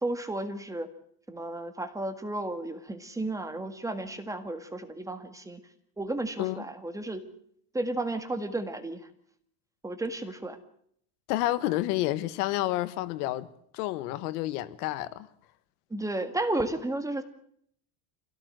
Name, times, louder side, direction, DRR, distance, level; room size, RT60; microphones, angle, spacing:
voice 1, 0.0-0.9 1.3-5.6 6.0-7.2 7.7-9.1 9.8-10.6 15.9-17.2, right 2 dB, 5° right, 1.8 m, -33 dB
voice 2, 11.3-13.5 13.7-15.3, left 16 dB, 85° left, 1.6 m, -29 dB
26.0 x 17.5 x 7.8 m
cardioid pair, 160°, 44 cm